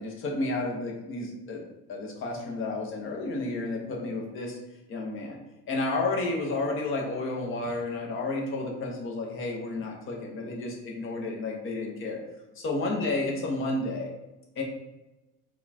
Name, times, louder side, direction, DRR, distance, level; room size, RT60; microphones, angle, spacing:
voice 1, 0.0-1.6 1.9-4.6 4.9-5.4 5.7-12.2 12.6-14.1 14.6-14.7, left 2 dB, 35° left, 0 dB, 0.8 m, -31 dB
4.6 x 2.3 x 4.1 m, 1.0 s
cardioid pair, 180°, 35 cm